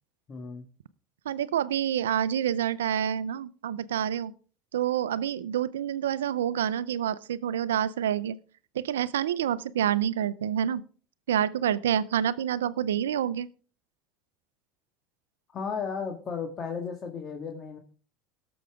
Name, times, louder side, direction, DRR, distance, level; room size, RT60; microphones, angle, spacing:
voice 1, 0.3-0.7 15.5-17.8, left 6 dB, 40° left, 4 dB, 1.8 m, -34 dB
voice 2, 1.2-4.3 4.7-8.4 8.7-10.8 11.3-13.5, right 10 dB, 85° right, 18 dB, 0.5 m, -27 dB
17.5 x 7.0 x 3.6 m, 0.39 s
hypercardioid pair, 80°, 0 cm